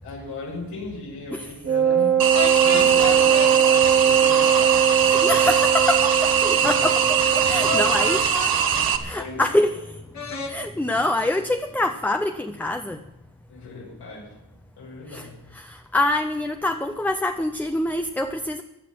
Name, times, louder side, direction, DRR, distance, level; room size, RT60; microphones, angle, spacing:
voice 1, 0.0-2.3 2.6-5.1 6.5-6.9 7.4-8.2 9.1-9.4 10.9-11.1 13.5-14.4 14.8-15.4, left 3 dB, 85° left, -4 dB, 6.2 m, -37 dB
Wind instrument woodwind instrument, 1.6-8.3, right 8 dB, 30° right, 1.0 m, -21 dB
sound 1, 2.2-9.0, right 7 dB, 65° right, 1.4 m, -21 dB
sound 2, 2.3-3.5 7.7-8.5 10.1-10.5, left 3 dB, 45° left, 2.1 m, -30 dB
voice 2, 5.0-13.0 15.1-18.6, left 1 dB, 5° left, 7 dB, 0.5 m, -26 dB
16.0 x 11.0 x 6.0 m, 0.94 s
wide cardioid pair, 165°, 38 cm